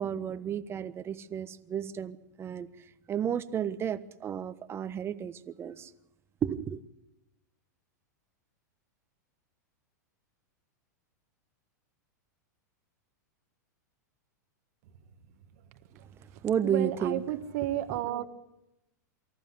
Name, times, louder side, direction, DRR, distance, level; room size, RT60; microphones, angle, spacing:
voice 1, 0.0-2.7 3.1-5.9 6.4-6.8 16.4-17.2 17.9-18.0, right 8 dB, 25° right, 12 dB, 1.2 m, -32 dB
voice 2, 16.6-18.3, right 13 dB, 60° right, 9 dB, 1.5 m, -32 dB
24.5 x 14.5 x 7.9 m, 0.91 s
hypercardioid pair, 105°, 10 cm